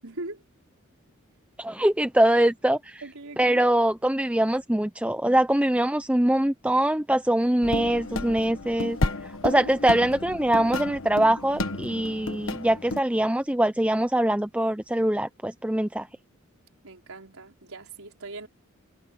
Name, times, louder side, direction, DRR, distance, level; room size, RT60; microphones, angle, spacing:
voice 1, 0.0-0.4 3.0-3.6 16.8-18.5, right 2 dB, 85° right, 4.4 m, -40 dB
voice 2, 1.6-3.0 3.4-9.0 9.4-16.1, right 1 dB, 5° right, 0.6 m, -23 dB
sound 1, 7.6-13.0, left 2 dB, 70° left, 1.4 m, -32 dB
head